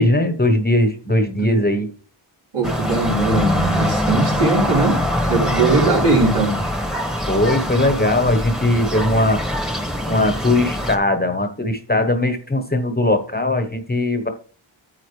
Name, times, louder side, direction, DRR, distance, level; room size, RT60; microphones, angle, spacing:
voice 1, 0.0-1.9 5.8-6.0 7.3-9.7 10.1-14.3, left 1 dB, 20° left, 1.1 m, -19 dB
voice 2, 2.5-5.0 5.3-6.6, right 3 dB, 75° right, 4.4 m, -19 dB
sound 1, 2.6-11.0, left 1 dB, ahead, 1.3 m, -23 dB
9.5 x 8.2 x 3.3 m
wide cardioid pair, 130°, 50 cm